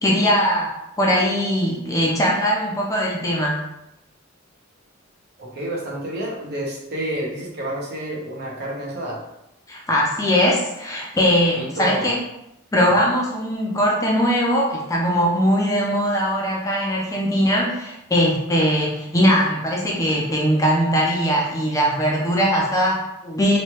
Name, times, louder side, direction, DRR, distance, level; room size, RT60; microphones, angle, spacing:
voice 1, 0.0-3.6 9.7-12.2 12.7-23.6, equal, 15° left, -3 dB, 0.4 m, -20 dB
voice 2, 5.4-9.2 11.6-12.1 12.9-13.1, right 1 dB, 50° right, -3 dB, 0.8 m, -29 dB
3.1 x 2.3 x 2.9 m, 0.85 s
head